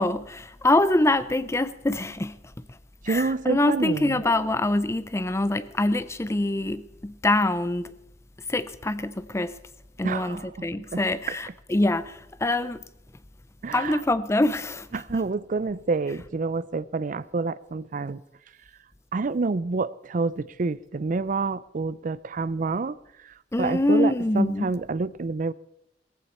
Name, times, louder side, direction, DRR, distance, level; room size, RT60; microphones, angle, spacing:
voice 1, 0.0-2.4 3.1-7.9 8.5-9.6 10.0-12.8 13.7-14.9 23.5-24.7, left 2 dB, 15° left, 0.5 m, -24 dB
voice 2, 3.0-4.2 10.0-11.0 11.3-11.4 13.6-14.0 14.9-18.2 19.1-25.5, right 4 dB, 50° right, 0.5 m, -28 dB
17.5 x 15.0 x 4.3 m
head